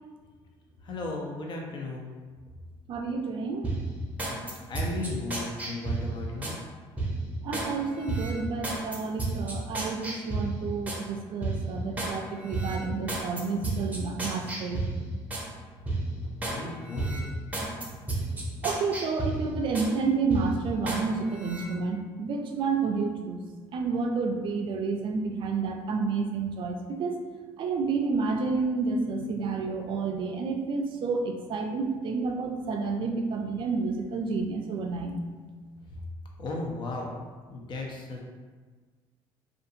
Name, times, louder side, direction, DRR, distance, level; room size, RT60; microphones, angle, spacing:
voice 1, 0.8-2.2 4.3-4.4 4.7-6.5 16.2-17.4 36.4-37.1 37.4-38.2, left 2 dB, 45° left, 0 dB, 0.6 m, -36 dB
voice 2, 2.9-3.7 7.4-14.8 17.6-17.7 18.6-23.4 23.7-27.2 27.6-35.2, right 4 dB, 50° right, 3 dB, 0.4 m, -30 dB
sound 1, 3.6-6.6 7.0-7.7 8.1-11.0 11.4-12.1 12.5-15.5 15.9-16.6 16.9-19.9 20.3-21.0 21.4-21.6, right 2 dB, 15° right, 0.6 m, -32 dB
2.5 x 2.4 x 2.7 m, 1.4 s
supercardioid pair, 90°, 11 cm